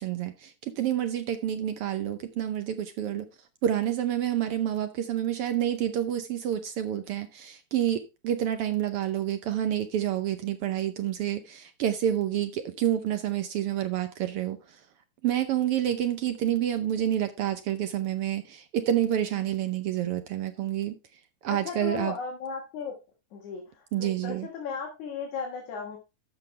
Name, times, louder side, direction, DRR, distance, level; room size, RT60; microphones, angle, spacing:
voice 1, 0.0-3.3 3.6-14.8 15.2-21.0 21.4-22.1 23.9-24.5, right 11 dB, 80° right, 1.3 m, -28 dB
voice 2, 21.5-22.9 23.3-26.0, left 5 dB, 75° left, 2.9 m, -36 dB
13.0 x 6.1 x 3.2 m
omnidirectional pair, 3.4 m